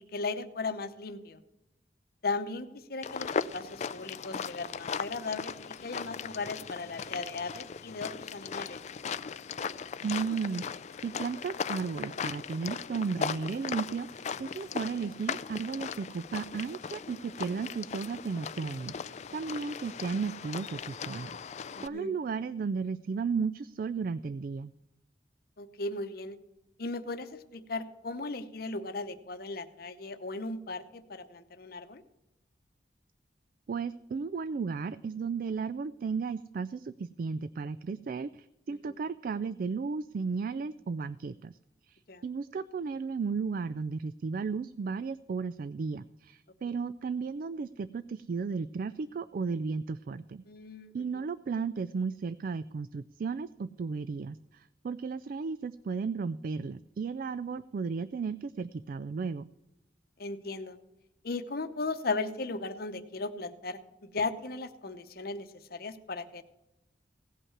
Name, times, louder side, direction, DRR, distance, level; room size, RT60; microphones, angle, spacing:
voice 1, 0.1-1.4 2.2-5.5 5.8-8.8 19.3-19.4 21.8-22.1 25.6-26.4 26.8-32.0 38.9-39.0 42.1-42.2 46.6-46.7 50.5-50.9 60.2-60.8 61.2-66.4, left 3 dB, 55° left, 10 dB, 0.8 m, -37 dB
sound 1, 3.0-21.9, left 6 dB, 40° left, 0.3 m, -38 dB
voice 2, 10.0-24.7 33.7-41.6 41.9-50.4 50.9-59.5, right 5 dB, 50° right, 15 dB, 0.3 m, -34 dB
16.5 x 5.6 x 7.2 m, 0.91 s
head